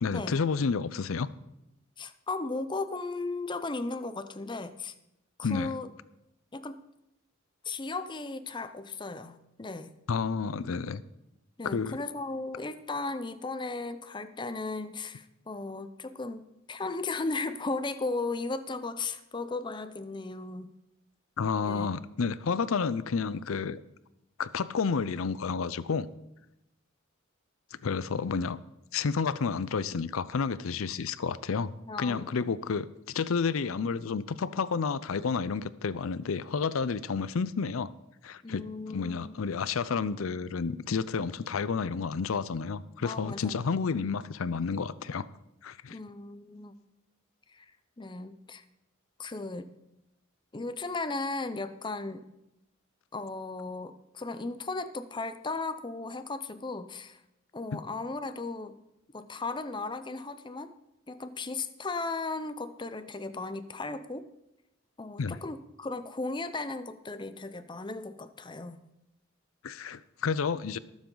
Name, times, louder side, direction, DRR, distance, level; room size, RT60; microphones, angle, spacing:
voice 1, 0.0-1.3 5.4-5.7 10.1-11.0 11.6-12.0 21.4-23.8 24.4-26.1 27.8-28.6 28.9-31.7 32.0-37.9 38.2-38.6 38.9-45.2 45.6-46.0 65.2-65.4 69.6-70.8, left 5 dB, 90° left, 17 dB, 0.5 m, -30 dB
voice 2, 2.0-4.9 5.4-5.9 6.5-6.8 7.6-9.9 11.6-20.7 21.6-22.0 31.9-32.5 38.4-39.4 43.0-43.6 45.9-46.7 47.5-47.7 48.0-48.6 49.2-49.7 50.5-52.3 53.1-57.2 57.5-58.8 59.1-60.7 61.1-64.3 65.0-68.8, left 3 dB, 25° left, 11 dB, 0.6 m, -36 dB
19.5 x 7.2 x 3.9 m, 0.88 s
head